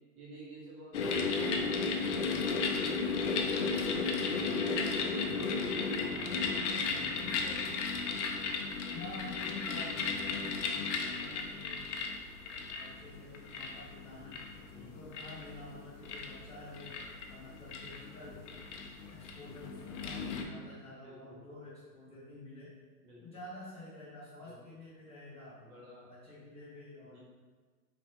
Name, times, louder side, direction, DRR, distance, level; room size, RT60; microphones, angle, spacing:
voice 1, 0.1-8.1 8.6-8.9 14.7-15.1 21.0-21.4 23.0-23.4 24.4-24.8 25.6-26.1 27.1-27.2, right 1 dB, 65° right, -5 dB, 1.4 m, -52 dB
sound 1, 0.9-20.4, left 4 dB, 50° left, 0.5 m, -35 dB
voice 2, 8.9-12.1 12.7-14.4 14.8-16.9 17.3-18.4 19.1-22.7 23.2-25.6 26.1-27.2, left 2 dB, 10° left, -9 dB, 1.1 m, -49 dB
2.9 x 2.8 x 2.9 m, 1.4 s
hypercardioid pair, 120°, 47 cm